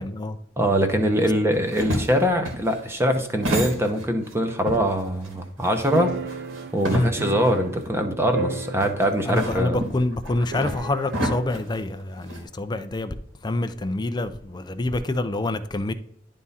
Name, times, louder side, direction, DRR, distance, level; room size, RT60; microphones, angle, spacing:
voice 1, 0.0-0.4 6.9-7.1 9.3-13.2 13.4-15.9, left 2 dB, 20° left, 0.5 m, -26 dB
voice 2, 0.6-6.1 6.7-9.8, equal, 10° right, 0.9 m, -23 dB
sound 1, 1.5-4.3 4.7-7.5 7.9-8.0 8.8-12.4, equal, 75° right, 2.3 m, -31 dB
sound 2, 5.9-8.0 8.3-9.3 9.6-9.7 10.5-11.3, right 3 dB, 55° right, 0.5 m, -33 dB
11.0 x 3.7 x 4.1 m
head